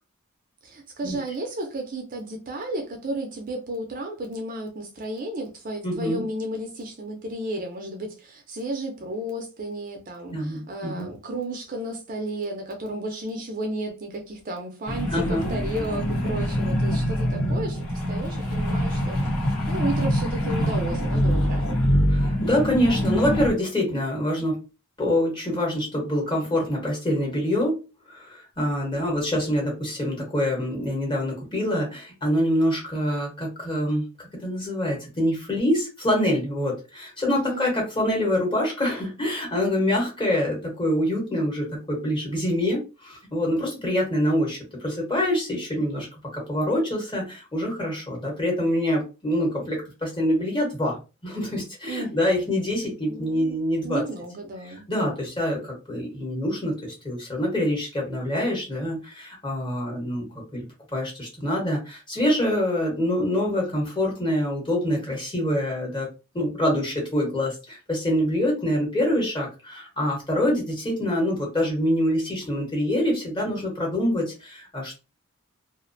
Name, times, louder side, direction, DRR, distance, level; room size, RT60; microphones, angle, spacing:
voice 1, 0.6-21.8 37.4-37.7 51.9-52.5 53.1-53.6 53.8-54.8, right 1 dB, 40° right, 0.4 m, -33 dB
voice 2, 5.8-6.2 10.3-11.1 15.1-15.6 22.1-24.6 25.0-27.8 28.1-34.0 34.4-46.1 46.3-54.0 54.7-60.3 60.5-60.6 60.9-66.1 66.3-74.9, left 1 dB, 20° left, 1.0 m, -25 dB
sound 1, 14.9-23.5, equal, 80° left, 1.0 m, -24 dB
2.4 x 2.1 x 2.6 m
head